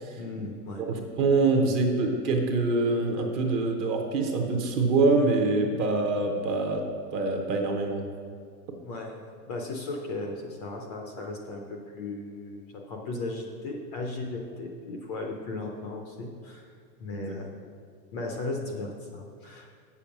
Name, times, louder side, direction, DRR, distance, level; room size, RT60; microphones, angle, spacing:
voice 1, 0.2-0.8 8.8-16.7 17.0-17.5 18.1-19.7, left 2 dB, 25° left, 1 dB, 0.5 m, -36 dB
voice 2, 0.8-6.8 7.1-8.1 17.1-17.3, right 3 dB, 25° right, 2 dB, 0.7 m, -25 dB
8.0 x 7.1 x 5.8 m, 2.3 s
supercardioid pair, 155°, 49 cm